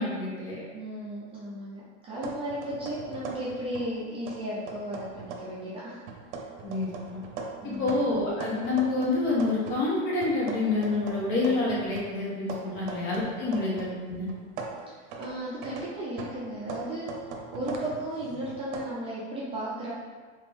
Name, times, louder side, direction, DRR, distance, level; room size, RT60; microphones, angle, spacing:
voice 1, 0.0-0.6 6.6-7.2 7.6-14.3, left 3 dB, 60° left, -6 dB, 1.5 m, -28 dB
voice 2, 0.7-6.0 7.6-8.0 12.7-13.0 13.6-13.7 14.9-19.9, right 1 dB, 15° right, -9 dB, 0.4 m, -35 dB
sound 1, 2.2-4.0 4.3-5.6 6.1-9.9 10.2-14.0 14.3-18.9, right 4 dB, 80° right, 0.7 m, -40 dB
3.5 x 2.9 x 3.5 m, 1.5 s
cardioid pair, 175°, 34 cm